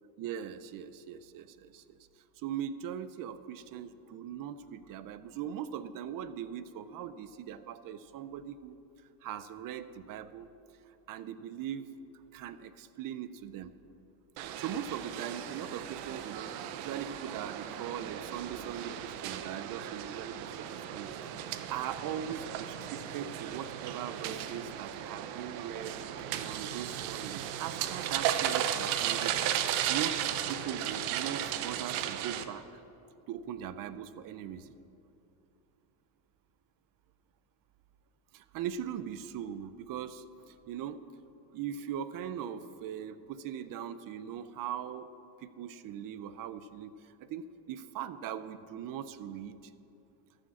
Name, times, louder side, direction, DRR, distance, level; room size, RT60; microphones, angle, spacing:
voice 1, 0.2-2.0 2.4-8.8 9.2-10.5 11.1-11.9 12.3-13.7 14.4-21.1 21.4-26.0 26.4-29.3 29.9-32.8 33.3-34.7 38.3-41.1 41.5-45.1 45.4-49.7, right 9 dB, 45° right, 13 dB, 0.6 m, -40 dB
sound 1, 14.4-32.4, right 10 dB, 70° right, 0.9 m, -35 dB
13.5 x 6.3 x 7.1 m, 2.8 s
supercardioid pair, 120°, 48 cm